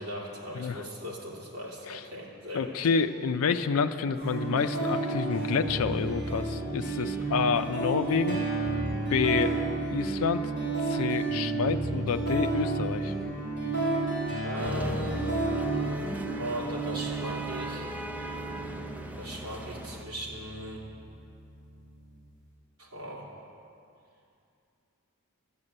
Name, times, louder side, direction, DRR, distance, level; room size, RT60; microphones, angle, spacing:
voice 1, 0.0-2.8 14.4-15.5 16.4-17.9 19.2-20.8 22.8-23.3, equal, 85° right, -3 dB, 2.7 m, -38 dB
sound 1, 2.1-8.2, left 1 dB, 30° right, 3.7 m, -52 dB
voice 2, 2.5-8.5 9.1-9.6 9.9-10.5 10.8-13.1, left 5 dB, 80° left, 9 dB, 0.4 m, -28 dB
sound 2, 4.2-22.2, right 3 dB, 50° right, 3.5 m, -32 dB
sound 3, 14.6-20.0, right 1 dB, 5° right, 0.5 m, -40 dB
12.5 x 6.7 x 8.6 m, 2.6 s
head